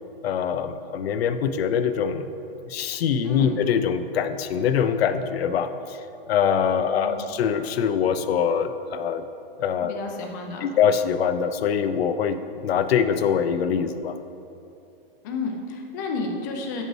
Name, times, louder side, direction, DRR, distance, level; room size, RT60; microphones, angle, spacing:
voice 1, 0.2-2.3 2.7-6.0 6.3-9.2 9.6-9.9 10.6-12.4 12.6-14.2, left 7 dB, 90° left, 10 dB, 0.5 m, -23 dB
voice 2, 3.2-3.6 6.8-7.3 9.8-10.8 15.2-16.8, left 3 dB, 20° left, 2 dB, 0.3 m, -32 dB
7.3 x 5.3 x 3.1 m, 2.7 s
hypercardioid pair, 155°, 30 cm